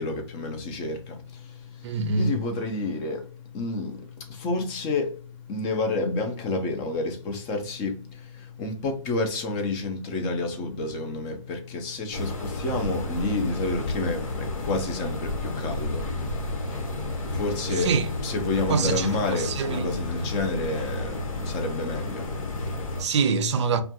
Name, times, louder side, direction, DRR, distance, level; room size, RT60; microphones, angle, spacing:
voice 1, 0.0-5.2 5.5-17.9 18.2-22.8, left 2 dB, 20° left, 0.4 m, -30 dB
voice 2, 1.8-2.4 17.7-18.1 18.7-20.0 23.0-23.8, right 5 dB, 55° right, 0.5 m, -25 dB
sound 1, 12.1-23.0, left 1 dB, 75° left, 1.1 m, -31 dB
2.4 x 2.3 x 2.7 m
hypercardioid pair, 150°, 17 cm